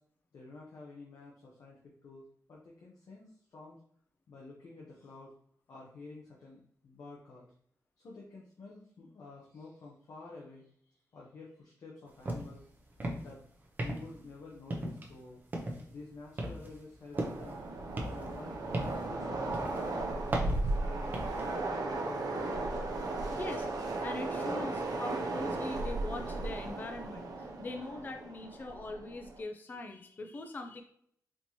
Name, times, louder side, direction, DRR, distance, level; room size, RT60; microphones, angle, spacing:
voice 1, 0.3-3.8 4.3-5.3 5.7-7.5 8.0-12.7 13.2-13.4 13.8-15.4 15.9-17.7 18.1-20.2 20.5-21.2 21.6-22.8, left 3 dB, 70° left, -4 dB, 0.8 m, -50 dB
sound 1, 12.2-12.6 12.9-13.4 13.8-14.3 14.7-15.2 15.5-15.9 16.4-17.6 18.0-19.1 19.5-19.8 20.3-21.5, right 1 dB, 30° right, 0.6 m, -37 dB
Train, 17.1-29.4, right 2 dB, 80° right, 0.6 m, -36 dB
voice 2, 23.3-30.8, left 2 dB, 30° left, 5 dB, 0.3 m, -42 dB
4.3 x 2.8 x 3.0 m, 0.64 s
wide cardioid pair, 175°, 6 cm